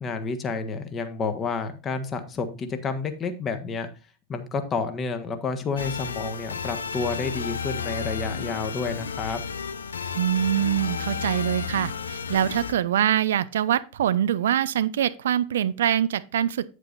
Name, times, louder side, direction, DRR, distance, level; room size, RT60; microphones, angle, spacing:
voice 1, 0.0-3.9 4.3-9.4, left 4 dB, 25° left, 1.3 m, -30 dB
sound 1, 5.8-12.7, left 6 dB, 70° left, 0.6 m, -32 dB
voice 2, 10.1-16.7, right 10 dB, 60° right, 0.4 m, -24 dB
9.1 x 8.2 x 2.6 m
figure-of-eight pair, 90°, 0 cm